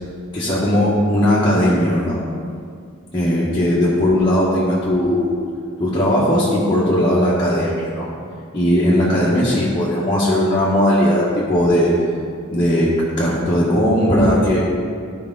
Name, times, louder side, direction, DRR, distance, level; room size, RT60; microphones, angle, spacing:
voice 1, 0.3-2.2 3.1-5.3 5.8-8.1 8.5-11.9 12.5-12.9 13.2-14.6, equal, 20° left, -9 dB, 1.4 m, -17 dB
13.0 x 5.0 x 3.8 m, 2.2 s
head